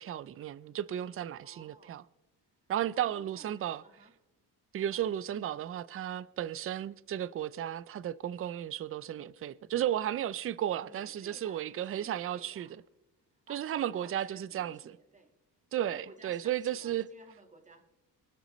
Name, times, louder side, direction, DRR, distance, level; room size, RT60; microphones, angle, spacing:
voice 1, 0.0-2.0 2.7-3.8 4.7-12.7 13.5-15.0 15.7-17.1, right 11 dB, 35° right, 0.4 m, -34 dB
voice 2, 1.4-2.0 2.9-4.1 4.8-5.0 10.8-12.8 13.5-15.3 15.9-17.8, right 3 dB, 20° right, 1.7 m, -56 dB
24.0 x 12.5 x 3.1 m
cardioid pair, 120°, 38 cm